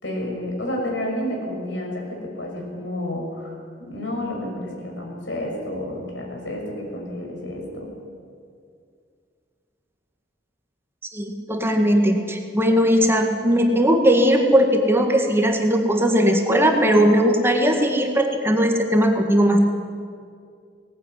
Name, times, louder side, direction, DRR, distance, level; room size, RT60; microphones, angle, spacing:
voice 1, 0.0-8.0, left 1 dB, 80° left, 0 dB, 6.3 m, -30 dB
voice 2, 11.1-19.6, equal, 15° right, 3 dB, 1.8 m, -18 dB
18.5 x 18.5 x 9.5 m, 2.3 s
head